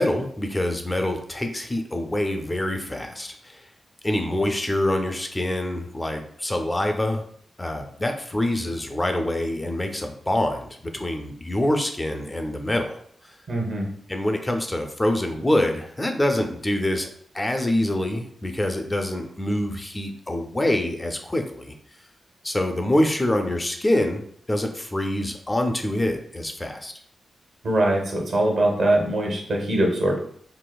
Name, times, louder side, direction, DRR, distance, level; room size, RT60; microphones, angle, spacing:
voice 1, 0.0-3.7 4.0-7.2 7.6-13.0 13.2-13.3 14.1-17.1 17.3-21.7 22.4-24.2 24.5-26.9, left 1 dB, 20° left, 4 dB, 0.4 m, -25 dB
voice 2, 13.5-13.9 27.6-30.2, right 1 dB, 70° right, 0 dB, 0.8 m, -22 dB
3.9 x 2.4 x 2.3 m, 0.62 s
wide cardioid pair, 105°, 0 cm